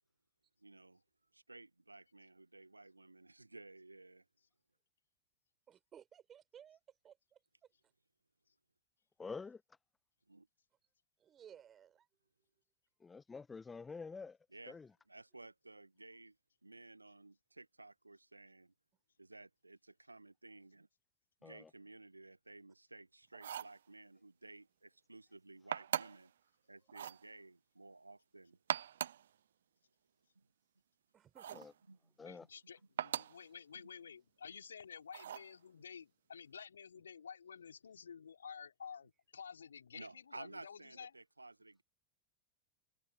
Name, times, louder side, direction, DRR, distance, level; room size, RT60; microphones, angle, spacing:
voice 1, 0.6-1.0 1.3-4.2 10.3-10.5 14.5-14.8 15.1-16.3 16.6-18.7 19.2-20.9 21.4-26.3 26.7-28.6 30.3-30.4 31.9-32.0 39.9-41.8, right 2 dB, 85° right, 1.4 m, -55 dB
voice 2, 5.7-7.4 11.2-12.1 31.1-31.6, right 9 dB, 25° right, 6.1 m, -59 dB
voice 3, 9.2-9.6 13.0-14.4 14.7-14.9 21.4-21.7 31.5-31.7 32.2-32.5, left 4 dB, 15° left, 1.0 m, -47 dB
sound 1, 23.3-23.8 25.7-26.3 26.9-27.2 28.5-29.3 31.4-31.7 33.0-33.4 35.1-35.5, right 10 dB, 65° right, 0.7 m, -40 dB
voice 4, 32.2-41.1, left 7 dB, 70° left, 4.0 m, -52 dB
figure-of-eight pair, 90°, 0 cm